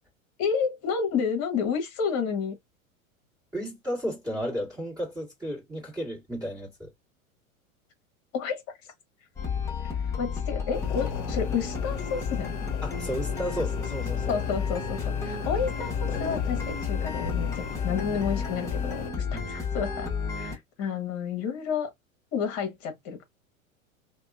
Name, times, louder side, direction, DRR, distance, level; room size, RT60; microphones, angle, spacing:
voice 1, 0.4-2.5 8.3-8.6 9.8-12.7 14.3-20.1 20.4-21.9 22.3-23.2, left 6 dB, 35° left, 1.1 m, -30 dB
voice 2, 3.5-6.9 12.8-14.4 19.3-19.5, equal, 10° right, 1.5 m, -33 dB
sound 1, 9.4-20.6, left 6 dB, 5° left, 1.1 m, -31 dB
sound 2, 10.7-19.1, left 7 dB, 55° left, 0.7 m, -38 dB
2.8 x 2.3 x 2.4 m
figure-of-eight pair, 90°, 41 cm